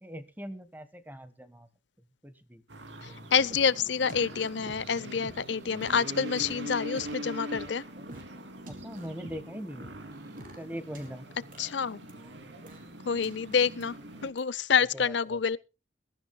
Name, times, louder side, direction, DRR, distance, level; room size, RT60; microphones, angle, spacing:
voice 1, 0.0-1.7 2.2-2.6 8.7-9.9 10.6-11.3 14.8-15.4, equal, 10° right, 1.3 m, -41 dB
sound 1, 2.7-14.3, right 1 dB, 70° right, 2.7 m, -43 dB
voice 2, 3.0-7.8 11.6-12.0 13.1-14.0 14.2-15.6, left 6 dB, 70° left, 0.6 m, -27 dB
sound 2, 3.1-3.6 4.1-4.7 5.2-6.0 6.4-6.5 6.9-7.7 8.0-8.2 8.7-9.3 9.8-11.1 11.5-12.8 13.2-13.8 14.4-14.5, right 1 dB, 45° right, 3.8 m, -47 dB
22.0 x 14.0 x 2.2 m
head